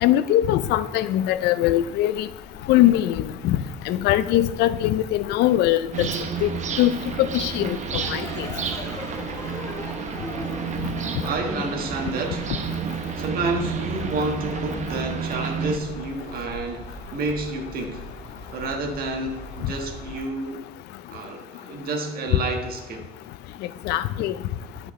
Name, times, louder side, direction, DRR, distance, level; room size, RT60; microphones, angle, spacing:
voice 1, 0.0-2.3 2.7-6.1 6.4-6.5 6.8-6.9 7.2-8.5 19.6-19.7 23.9-24.3, left 13 dB, 80° left, 0.4 m, -21 dB
sound 1, 1.4-20.2, left 2 dB, 45° left, 2.1 m, -43 dB
sound 2, 5.9-15.8, right 7 dB, 45° right, 0.7 m, -31 dB
sound 3, 7.9-13.1, left 2 dB, 15° left, 1.2 m, -38 dB
voice 2, 11.2-12.5 12.9-18.0 18.5-20.6 21.1-23.0, right 2 dB, 65° right, 1.4 m, -29 dB
10.5 x 5.8 x 3.2 m
cardioid pair, 110°, 17 cm